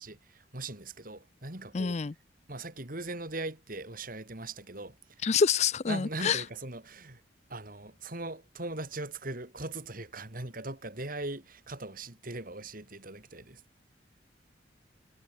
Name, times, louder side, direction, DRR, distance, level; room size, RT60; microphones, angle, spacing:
voice 1, 0.0-2.0 2.5-5.3 5.9-7.2 7.5-13.6, right 2 dB, 50° right, 3.7 m, -40 dB
voice 2, 1.7-2.1 5.2-6.4, left 6 dB, 35° left, 0.4 m, -27 dB
head